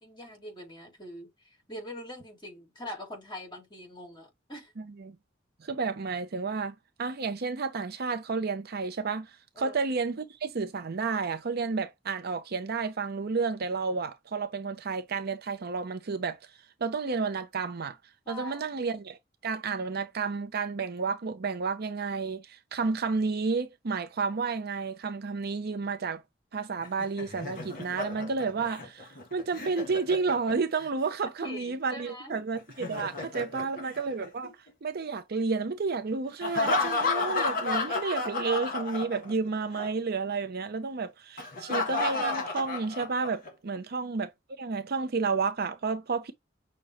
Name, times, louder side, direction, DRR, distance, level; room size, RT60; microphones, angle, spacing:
voice 1, 0.0-4.7 9.5-9.8 18.3-18.8 31.4-32.4 33.6-33.9, left 1 dB, 25° left, 2.2 m, -43 dB
voice 2, 4.8-5.2 5.6-16.4 16.8-18.0 18.3-19.2 19.4-26.2 26.5-34.5 34.8-44.3 44.6-46.3, right 4 dB, 55° right, 0.6 m, -31 dB
Laughter, 26.8-30.9 32.6-34.7 36.4-39.5 39.7-39.9 41.4-43.5, left 3 dB, 50° left, 1.6 m, -32 dB
6.3 x 2.2 x 3.0 m
head